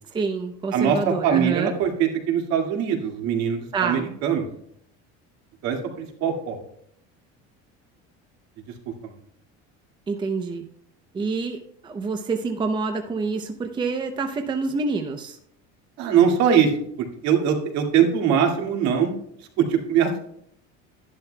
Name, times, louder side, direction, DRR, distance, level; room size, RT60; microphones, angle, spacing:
voice 1, 0.1-1.7 3.7-4.1 10.1-10.7 11.1-15.4, right 4 dB, 15° right, 5 dB, 0.6 m, -27 dB
voice 2, 0.7-4.5 5.6-6.6 9.0-9.1 16.0-16.7 17.0-19.1 19.6-20.2, right 8 dB, 65° right, 2 dB, 2.1 m, -22 dB
12.0 x 11.0 x 2.2 m, 0.68 s
cardioid pair, 160°, 30 cm